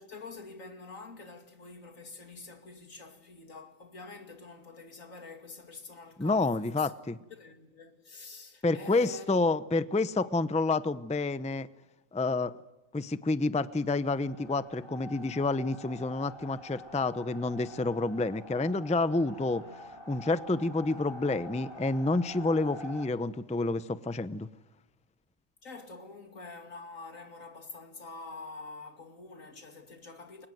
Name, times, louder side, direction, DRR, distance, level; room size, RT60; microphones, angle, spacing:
voice 1, 0.0-6.9 7.3-9.6 19.7-19.8 25.6-30.5, left 3 dB, 80° left, 2.9 m, -47 dB
voice 2, 6.2-7.2 8.6-11.7 12.1-12.5 12.9-19.6 20.1-24.5, left 3 dB, 5° left, 0.6 m, -29 dB
sound 1, 14.0-23.1, left 1 dB, 45° left, 4.7 m, -47 dB
29.5 x 23.5 x 7.9 m
omnidirectional pair, 1.4 m